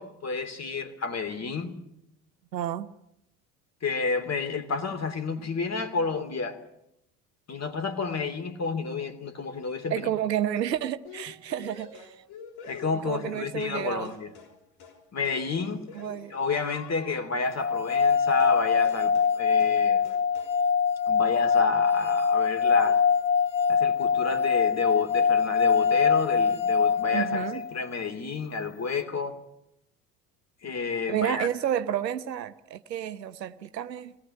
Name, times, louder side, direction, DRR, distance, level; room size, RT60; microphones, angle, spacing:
voice 1, 0.0-1.8 3.8-6.6 7.5-10.1 12.6-14.3 15.1-15.8 16.3-20.1 21.1-23.0 23.7-27.4 27.7-29.4 30.6-31.5, left 4 dB, 30° left, 3.2 m, -30 dB
voice 2, 2.5-2.9 9.9-12.2 13.0-14.2 15.9-16.4 27.1-27.6 31.1-34.2, right 10 dB, 80° right, 1.0 m, -30 dB
sound 1, 11.0-13.8 14.0-14.5 14.8-15.0 15.2-17.3 18.4-18.6 18.8-19.3 19.6-19.8 20.0-20.5, left 5 dB, 60° left, 5.9 m, -47 dB
sound 2, 17.6-27.7, left 6 dB, 85° left, 1.6 m, -23 dB
24.0 x 18.0 x 9.9 m
figure-of-eight pair, 60°, 49 cm